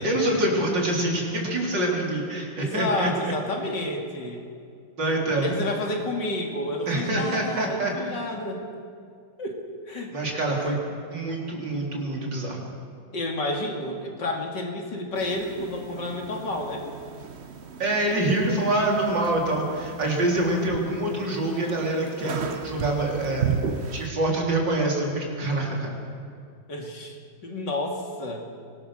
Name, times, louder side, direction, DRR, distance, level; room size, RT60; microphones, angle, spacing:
voice 1, 0.0-3.3 5.0-5.5 6.9-7.9 10.1-10.8 11.1-12.6 17.8-23.5 23.9-25.9, right 1 dB, 75° right, -1 dB, 4.4 m, -25 dB
voice 2, 2.6-4.4 5.0-8.6 9.4-9.6 9.9-10.1 10.6-10.7 13.1-16.8 26.7-28.5, left 2 dB, 70° left, 1 dB, 3.3 m, -30 dB
sound 1, 15.1-24.1, right 7 dB, 45° right, 1.1 m, -35 dB
23.5 x 19.5 x 6.4 m, 2.4 s
omnidirectional pair, 2.0 m